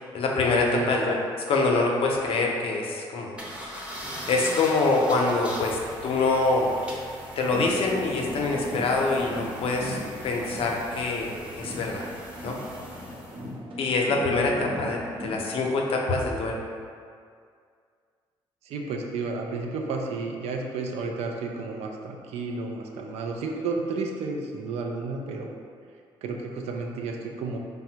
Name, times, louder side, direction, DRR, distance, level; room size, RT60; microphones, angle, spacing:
voice 1, 0.1-1.2 1.5-3.9 4.3-6.7 7.4-10.0 10.2-12.0 12.4-12.6 13.8-16.6, left 3 dB, 60° left, 0 dB, 0.5 m, -25 dB
sound 1, 3.4-13.5, equal, 10° right, 0.7 m, -40 dB
sound 2, 7.5-11.3 11.6-15.5, equal, 55° right, 0.8 m, -38 dB
voice 2, 18.6-25.5 26.2-27.6, right 3 dB, 75° right, 1 dB, 0.4 m, -32 dB
3.4 x 2.0 x 2.7 m, 2.2 s
supercardioid pair, 70°, 11 cm